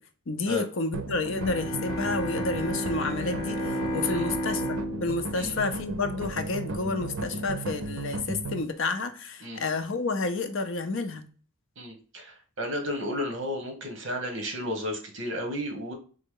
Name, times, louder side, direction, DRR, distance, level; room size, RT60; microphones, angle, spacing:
voice 1, 0.3-11.2, left 3 dB, 60° left, 0.6 m, -30 dB
sound 1, 0.9-8.6, right 3 dB, 75° right, 0.6 m, -36 dB
Bowed string instrument, 1.3-6.6, equal, 15° left, 1.0 m, -32 dB
voice 2, 11.8-15.9, left 1 dB, 55° right, 1.2 m, -33 dB
4.0 x 3.3 x 3.7 m
head